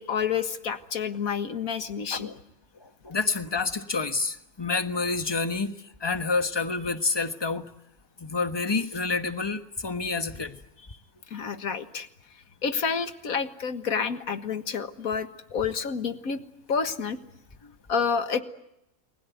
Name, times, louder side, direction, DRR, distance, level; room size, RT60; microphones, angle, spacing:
voice 1, 0.0-2.3 11.3-12.1 12.6-16.4 16.7-17.2 17.9-18.4, left 6 dB, 75° left, 9 dB, 1.9 m, -29 dB
voice 2, 2.8-7.7 8.2-10.6 17.6-17.7, left 4 dB, 20° left, 8 dB, 1.2 m, -28 dB
29.5 x 21.0 x 9.3 m, 0.85 s
omnidirectional pair, 1.5 m